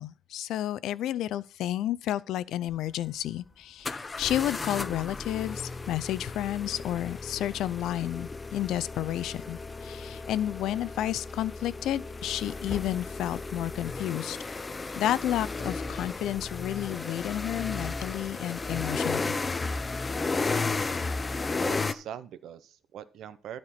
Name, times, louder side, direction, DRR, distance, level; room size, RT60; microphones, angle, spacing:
voice 1, 0.0-14.4 15.0-19.4, left 12 dB, 80° left, 0.4 m, -31 dB
sound 1, 2.7-2.8 3.8-21.9, left 3 dB, 20° left, 0.5 m, -34 dB
voice 2, 21.6-23.6, right 9 dB, 70° right, 0.7 m, -42 dB
12.5 x 4.4 x 5.8 m
cardioid pair, 130°, 0 cm